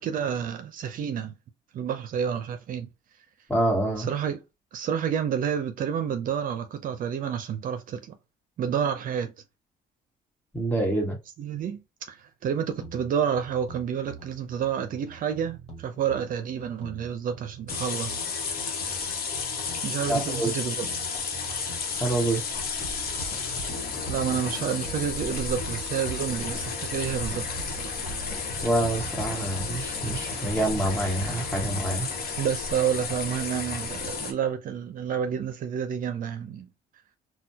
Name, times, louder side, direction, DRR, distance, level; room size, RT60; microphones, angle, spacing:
voice 1, 0.0-1.3 1.7-2.9 4.0-4.4 4.7-8.1 8.6-9.3 11.4-18.3 19.8-21.1 24.1-27.9 32.4-36.7, right 8 dB, 55° right, 0.6 m, -29 dB
voice 2, 3.5-4.1 10.5-11.2 20.1-20.5 22.0-22.4 28.6-32.1, right 1 dB, 10° left, 1.5 m, -26 dB
sound 1, 12.8-32.0, right 2 dB, 35° left, 1.4 m, -41 dB
sound 2, 17.7-34.3, left 5 dB, 65° left, 1.0 m, -32 dB
4.1 x 2.3 x 2.7 m
cardioid pair, 110°, 17 cm